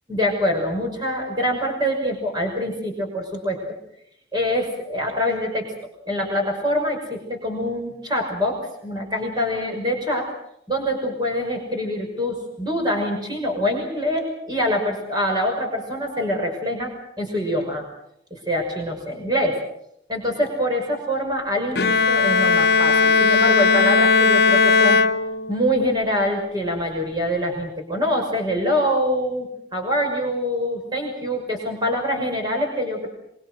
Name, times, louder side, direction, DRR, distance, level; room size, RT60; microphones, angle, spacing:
voice 1, 0.1-3.6 4.3-5.7 6.1-10.3 10.7-17.9 18.3-19.6 20.1-25.0 25.5-33.1, equal, 20° right, 1 dB, 6.0 m, -25 dB
Bowed string instrument, 21.8-25.8, left 4 dB, 55° left, 1.0 m, -17 dB
25.5 x 24.5 x 6.5 m, 0.74 s
head